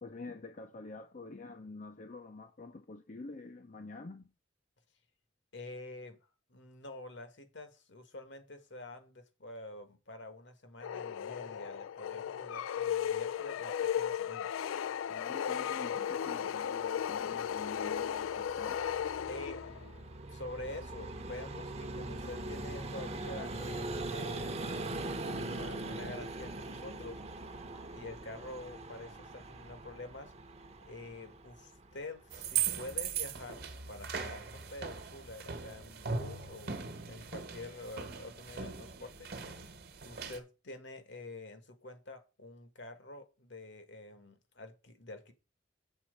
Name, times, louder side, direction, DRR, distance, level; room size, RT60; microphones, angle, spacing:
voice 1, 0.0-4.3 15.1-18.8, left 3 dB, 40° left, 0.6 m, -47 dB
voice 2, 5.5-6.2 6.5-14.5 19.3-19.9 20.3-27.2 27.9-30.3 30.8-39.3 40.0-45.3, left 2 dB, 60° left, 1.6 m, -47 dB
sound 1, 10.8-19.9, left 9 dB, 85° left, 0.3 m, -35 dB
Vehicle, 17.9-32.6, right 2 dB, 35° right, 0.9 m, -42 dB
sound 2, 32.3-40.4, right 7 dB, 50° right, 1.3 m, -39 dB
7.3 x 4.2 x 6.4 m
head